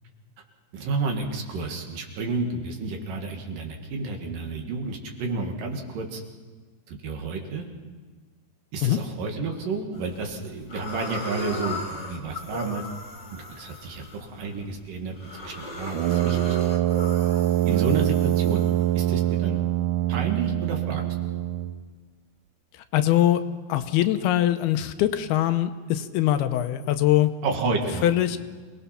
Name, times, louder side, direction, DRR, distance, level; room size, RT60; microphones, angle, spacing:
voice 1, 0.7-6.2 6.9-7.7 8.7-12.8 13.3-15.1 15.4-16.6 17.7-18.6 18.9-19.6 20.1-21.0 27.4-28.1, right 4 dB, 60° right, 2 dB, 3.3 m, -30 dB
sound 1, 9.9-10.3 10.7-19.3, left 1 dB, 20° left, 2.7 m, -37 dB
Brass instrument, 15.9-21.8, right 14 dB, 80° right, 1.9 m, -24 dB
voice 2, 22.9-23.4 23.7-27.3 28.0-28.4, left 13 dB, 80° left, 9 dB, 2.7 m, -22 dB
27.0 x 19.0 x 5.8 m, 1.5 s
omnidirectional pair, 4.6 m